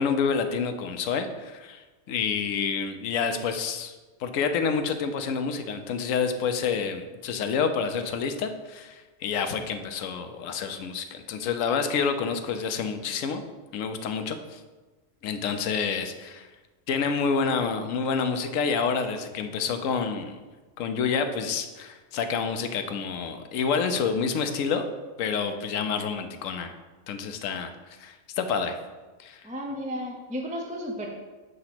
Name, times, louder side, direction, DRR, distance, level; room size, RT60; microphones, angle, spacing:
voice 1, 0.0-3.9 4.2-13.4 13.7-14.6 15.2-16.5 16.9-20.4 20.8-24.9 25.2-26.7 27.1-27.7 28.0-28.8 29.2-29.5, left 5 dB, 75° left, 7 dB, 1.0 m, -28 dB
voice 2, 29.4-31.1, equal, 10° right, 0 dB, 0.4 m, -33 dB
7.9 x 2.9 x 5.8 m, 1.3 s
omnidirectional pair, 1.4 m